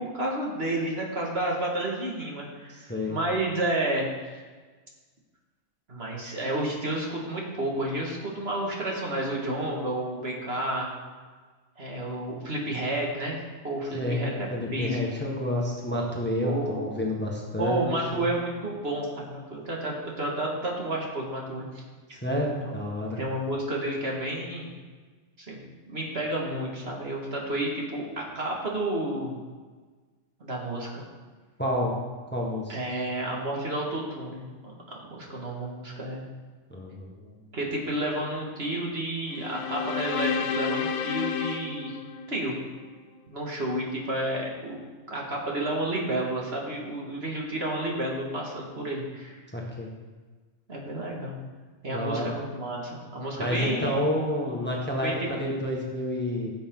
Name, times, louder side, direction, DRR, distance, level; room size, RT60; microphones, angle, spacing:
voice 1, 0.0-2.7 3.1-4.4 5.9-10.9 11.8-15.0 16.4-17.0 17.6-21.8 22.7-22.8 23.2-24.7 25.4-25.6 25.9-29.4 30.4-31.0 32.7-34.7 35.1-36.2 37.5-42.0 42.3-42.6 43.3-44.8 45.1-49.4 50.7-51.4 51.8-54.0 55.0-55.1, right 1 dB, 50° right, -2 dB, 2.3 m, -31 dB
voice 2, 2.7-3.1 13.9-14.2 14.5-18.2 22.1-23.2 31.6-31.9 32.3-32.8 36.7-37.3 49.5-49.9 51.9-52.3 53.4-56.5, left 1 dB, 10° left, -2 dB, 1.6 m, -29 dB
sound 1, 39.3-42.7, left 7 dB, 70° left, 1.1 m, -31 dB
15.5 x 7.8 x 3.9 m, 1.4 s
omnidirectional pair, 1.3 m